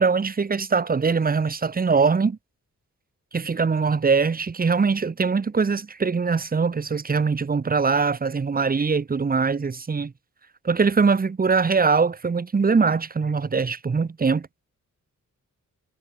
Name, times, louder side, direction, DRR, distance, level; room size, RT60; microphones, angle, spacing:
voice 1, 0.0-2.4 3.3-10.1 10.6-14.5, right 5 dB, 30° right, 0.9 m, -22 dB
wide cardioid pair, 135°, 31 cm